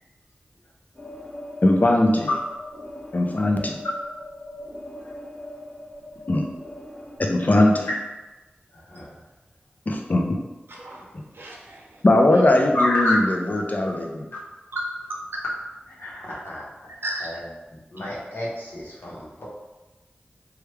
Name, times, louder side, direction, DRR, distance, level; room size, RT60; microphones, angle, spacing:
sound 1, 0.9-7.2, left 1 dB, 20° left, 1.0 m, -40 dB
voice 1, 1.6-2.3 3.1-3.8 6.3-6.5 7.2-7.9 9.9-10.4 12.0-14.3, left 1 dB, 50° left, 2 dB, 0.5 m, -20 dB
voice 2, 10.7-12.0 14.7-15.2 16.3-16.4 17.0-17.3, right 1 dB, 90° right, -2 dB, 0.6 m, -34 dB
voice 3, 12.7-13.2 13.5-13.6 16.0-16.6 17.2-17.4 17.9-19.5, left 1 dB, 85° left, -6 dB, 0.9 m, -28 dB
3.2 x 2.3 x 3.2 m, 1.1 s
wide cardioid pair, 50°, 4 cm